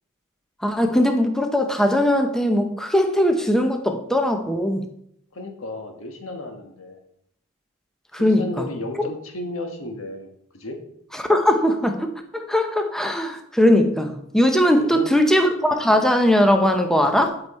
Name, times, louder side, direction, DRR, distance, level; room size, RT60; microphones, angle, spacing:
voice 1, 0.6-4.8 8.1-8.7 11.2-17.4, left 1 dB, ahead, 5 dB, 0.7 m, -20 dB
voice 2, 5.3-7.0 8.2-10.8 14.8-15.1, left 1 dB, 65° left, 3 dB, 1.4 m, -33 dB
12.5 x 4.8 x 4.3 m, 0.73 s
head